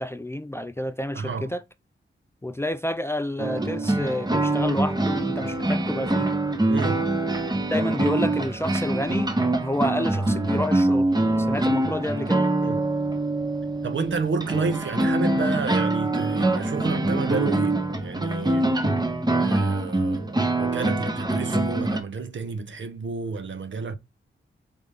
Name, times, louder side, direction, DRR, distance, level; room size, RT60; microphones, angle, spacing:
voice 1, 0.0-1.6 2.4-6.3 7.7-11.1 11.4-12.5, left 1 dB, 10° left, 0.3 m, -29 dB
voice 2, 1.1-1.5 6.7-7.2 12.6-12.9 13.8-18.7 19.4-24.0, right 5 dB, 65° right, 0.8 m, -30 dB
sound 1, 3.4-22.0, right 2 dB, 20° right, 0.8 m, -24 dB
4.0 x 3.5 x 3.4 m
wide cardioid pair, 95°, 21 cm